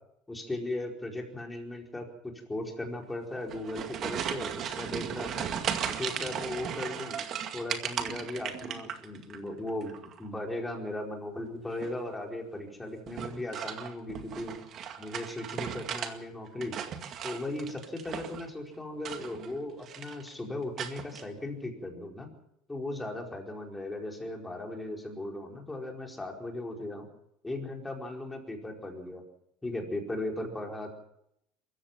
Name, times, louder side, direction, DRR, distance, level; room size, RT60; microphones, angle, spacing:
voice 1, 0.3-5.5 5.9-7.2 7.5-14.6 15.0-16.7 17.2-22.3 22.7-27.1 27.4-29.2 29.6-30.9, left 1 dB, 10° left, 1 dB, 4.7 m, -37 dB
sound 1, 3.4-9.4 9.7-10.3 11.7-12.1 13.1-16.1 16.5-18.5 19.0-19.6 19.8-20.3 20.8-21.2, right 8 dB, 40° right, 2.1 m, -36 dB
23.5 x 15.0 x 7.5 m, 0.75 s
cardioid pair, 135°, 0 cm